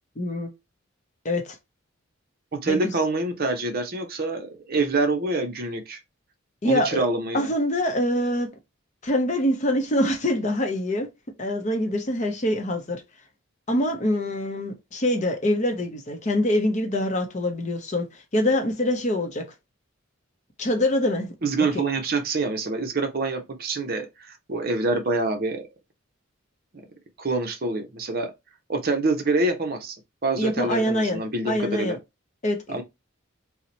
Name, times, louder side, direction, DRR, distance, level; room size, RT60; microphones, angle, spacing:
voice 1, 0.2-0.5 1.2-1.6 2.7-2.9 6.6-7.0 7.3-8.5 9.0-11.1 11.4-13.0 13.7-19.5 20.6-21.3 21.7-21.8 30.4-32.0 32.4-32.6, left 1 dB, 35° left, 0.6 m, -24 dB
voice 2, 2.5-6.0 6.6-7.5 21.4-25.6 27.2-28.3 28.7-30.0 30.2-32.0 32.7-32.8, right 3 dB, 45° right, 0.6 m, -26 dB
2.8 x 2.1 x 3.8 m
head